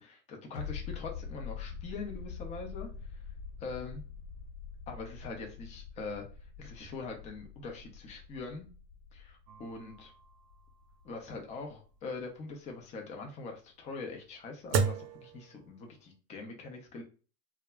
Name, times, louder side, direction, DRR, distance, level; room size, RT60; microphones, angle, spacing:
voice 1, 0.0-2.9 3.6-4.0 4.9-6.3 6.6-8.7 9.1-10.1 11.0-17.0, left 4 dB, 15° left, 2 dB, 0.4 m, -43 dB
sound 1, 0.5-11.9 12.2-12.3, left 6 dB, 60° left, 0.9 m, -45 dB
sound 2, 9.5-16.1, right 5 dB, 85° right, 0.6 m, -37 dB
2.2 x 2.0 x 3.4 m, 0.36 s
hypercardioid pair, 105°, 49 cm